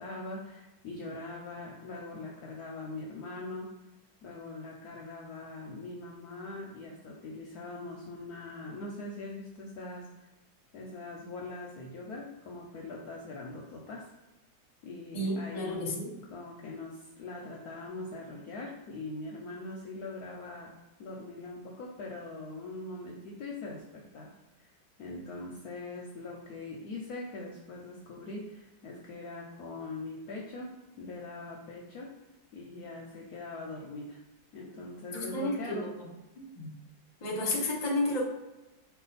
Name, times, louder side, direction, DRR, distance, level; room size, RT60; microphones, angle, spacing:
voice 1, 0.0-3.7 4.2-10.3 10.7-14.0 14.8-16.0 16.3-20.7 21.0-24.7 25.0-30.7 31.0-32.1 32.5-34.2 34.5-35.9, left 2 dB, 70° left, -1 dB, 0.9 m, -42 dB
voice 2, 15.1-16.1 35.1-36.1 36.4-36.7 37.2-38.2, left 1 dB, 35° left, -2 dB, 0.7 m, -32 dB
4.8 x 2.3 x 3.9 m, 1.0 s
omnidirectional pair, 2.1 m